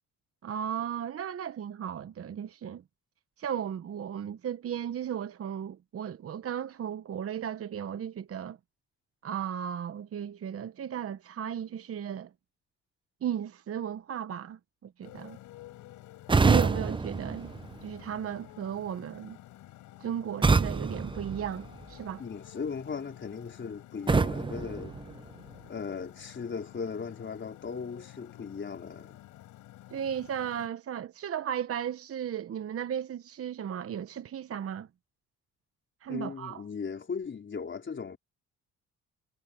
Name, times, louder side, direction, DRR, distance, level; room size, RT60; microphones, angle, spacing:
voice 1, 0.4-2.8 3.4-8.6 9.2-12.3 13.2-15.4 16.4-17.5 17.8-19.4 20.0-22.2 29.9-34.9 36.0-36.6, right 9 dB, 50° right, 0.9 m, -35 dB
Motorcycle, 15.0-30.7, left 15 dB, 90° left, 6.1 m, -51 dB
sound 1, 16.3-18.3 20.4-22.1 24.1-25.7, right 4 dB, 15° right, 0.6 m, -27 dB
voice 2, 22.2-25.0 25.7-29.2 36.1-38.2, left 5 dB, 40° left, 4.3 m, -37 dB
cardioid pair, 90°, 30 cm